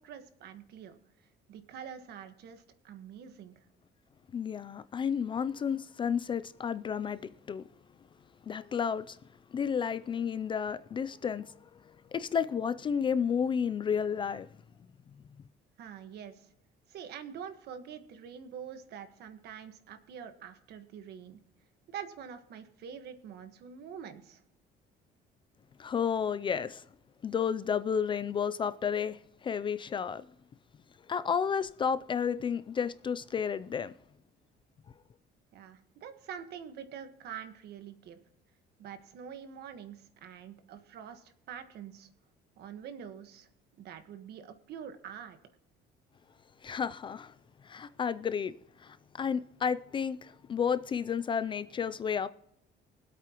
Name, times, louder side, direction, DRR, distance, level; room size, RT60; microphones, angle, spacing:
voice 1, 0.0-3.5 15.8-16.5 16.9-21.4 21.9-24.4 35.5-38.2 38.8-42.1 42.6-43.5 43.8-45.4, right 8 dB, 60° right, 1.4 m, -45 dB
voice 2, 4.3-7.6 8.5-9.2 9.5-11.6 12.1-14.5 25.8-26.8 27.2-30.3 31.1-33.9 46.6-47.3 47.6-48.5 48.8-52.3, left 7 dB, 25° left, 0.4 m, -32 dB
23.5 x 8.4 x 3.0 m
cardioid pair, 165°, 19 cm